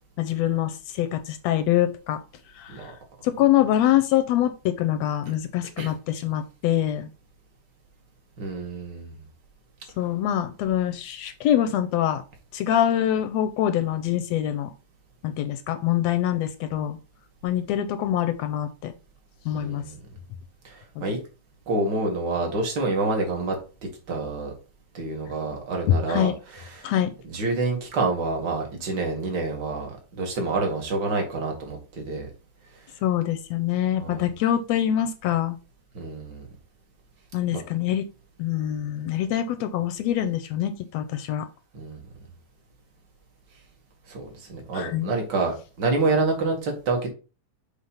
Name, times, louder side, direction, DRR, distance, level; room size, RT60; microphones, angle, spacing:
voice 1, 0.2-2.2 2.6-2.9 3.2-7.1 10.0-12.2 12.5-14.7 15.2-17.0 17.4-18.9 19.5-19.8 21.0-21.1 26.1-26.3 26.8-27.1 33.0-35.6 37.3-38.1 38.4-41.5 44.7-45.1, left 11 dB, 80° left, 9 dB, 1.7 m, -24 dB
voice 2, 8.4-9.2 19.5-20.0 20.6-21.2 21.7-23.6 24.1-24.5 24.9-26.9 27.3-32.3 34.0-34.2 35.9-36.5 37.5-37.6 41.7-42.0 44.1-47.1, right 3 dB, 40° right, 2 dB, 2.3 m, -27 dB
6.6 x 3.4 x 5.6 m, 0.33 s
omnidirectional pair, 3.3 m